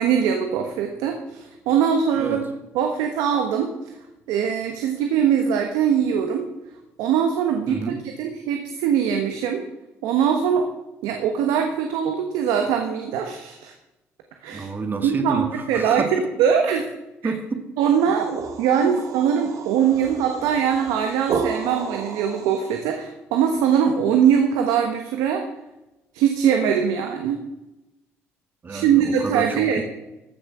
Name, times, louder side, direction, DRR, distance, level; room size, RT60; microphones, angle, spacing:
voice 1, 0.0-2.5 2.7-3.7 4.3-6.5 7.0-9.6 10.0-10.7 11.0-13.7 14.4-14.7 15.0-16.0 16.4-16.9 17.2-17.3 17.8-25.4 26.1-27.4 28.7-29.8, right 8 dB, 85° right, 4 dB, 1.3 m, -22 dB
voice 2, 7.7-8.0 14.5-16.1 17.2-17.6 18.8-18.9 28.6-29.8, right 4 dB, 35° right, 8 dB, 1.9 m, -29 dB
sound 1, 18.0-22.9, right 6 dB, 65° right, 1.8 m, -32 dB
14.5 x 6.7 x 6.2 m, 1.0 s
supercardioid pair, 80°, 6 cm